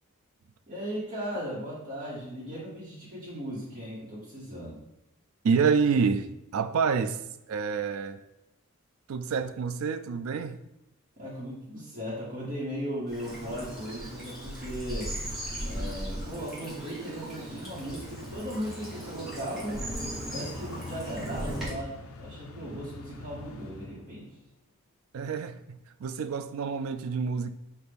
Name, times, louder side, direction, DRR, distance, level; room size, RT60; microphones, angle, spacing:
voice 1, 0.7-4.8 11.2-15.1 15.6-19.9 20.3-24.4, equal, 40° right, -10 dB, 1.3 m, -37 dB
voice 2, 5.4-7.2 7.5-8.2 9.1-10.6 25.1-27.5, right 5 dB, 70° right, 11 dB, 0.3 m, -28 dB
Bird vocalization bird call bird song / Stream, 13.1-21.7, right 1 dB, ahead, 1.2 m, -37 dB
sound 1, 17.7-24.5, left 3 dB, 75° left, 0.5 m, -46 dB
5.9 x 2.5 x 3.4 m, 0.90 s
head